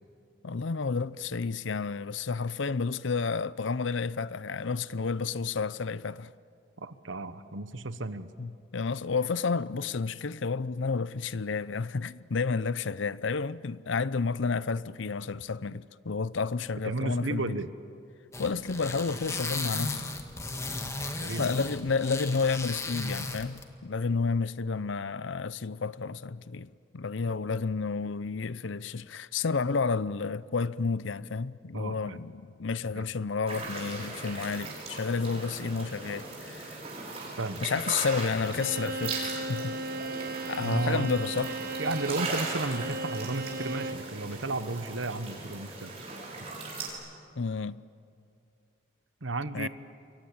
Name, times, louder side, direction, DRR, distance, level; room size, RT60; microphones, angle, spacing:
voice 1, 0.4-6.3 8.4-17.6 18.4-20.0 21.4-36.8 37.6-39.8 40.5-41.5 47.4-47.8 49.5-49.7, left 4 dB, 75° left, 0.6 m, -31 dB
voice 2, 6.8-8.3 16.8-17.7 21.2-21.7 31.7-32.2 32.9-33.0 37.4-37.8 40.6-41.1 41.8-46.0 49.2-49.7, right 3 dB, 80° right, 1.3 m, -33 dB
sound 1, 18.3-23.6, left 2 dB, 15° left, 1.7 m, -35 dB
sound 2, 33.5-46.9, right 3 dB, 30° right, 6.6 m, -39 dB
Bowed string instrument, 38.4-44.1, right 2 dB, 50° right, 1.4 m, -36 dB
28.5 x 23.5 x 8.7 m
head